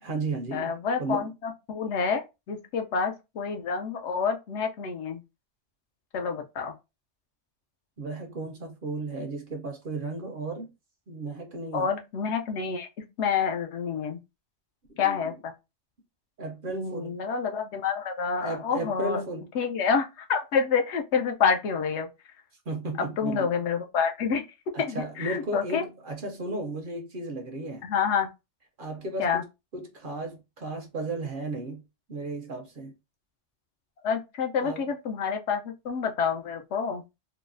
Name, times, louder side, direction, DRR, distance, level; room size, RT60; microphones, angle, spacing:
voice 1, 0.0-1.3 8.0-10.7 11.1-11.9 14.9-15.2 16.4-17.2 18.4-19.5 22.7-23.5 24.7-27.9 28.8-29.4 29.7-31.8 32.1-32.9 34.6-34.8, right 2 dB, 55° right, 0.7 m, -34 dB
voice 2, 0.5-5.2 6.1-6.7 11.7-14.2 15.0-15.5 16.7-19.2 19.5-22.1 23.0-24.4 24.8-25.8 27.8-28.3 29.2-29.4 34.0-37.0, left 6 dB, 70° left, 0.9 m, -28 dB
3.8 x 2.0 x 2.5 m
omnidirectional pair, 1.2 m